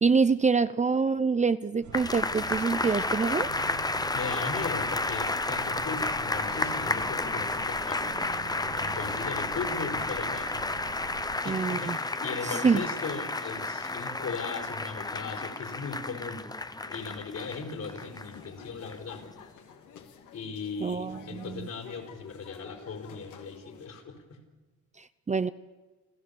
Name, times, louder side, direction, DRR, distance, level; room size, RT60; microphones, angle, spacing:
voice 1, 0.0-3.5 11.5-12.0 12.4-12.8 20.8-21.7 25.0-25.5, right 5 dB, 25° right, 14 dB, 0.6 m, -26 dB
sound 1, 1.8-11.4, right 7 dB, 75° right, 1.9 m, -45 dB
sound 2, 1.9-18.5 18.9-19.0, left 2 dB, 15° left, 0.8 m, -31 dB
voice 2, 4.1-8.3 8.7-10.6 11.4-16.5 16.9-19.2 20.3-24.4, left 4 dB, 60° left, 2 dB, 4.7 m, -38 dB
sound 3, 16.8-23.9, left 7 dB, 75° left, 2.3 m, -50 dB
29.5 x 14.0 x 7.1 m, 1.2 s
cardioid pair, 90°, 30 cm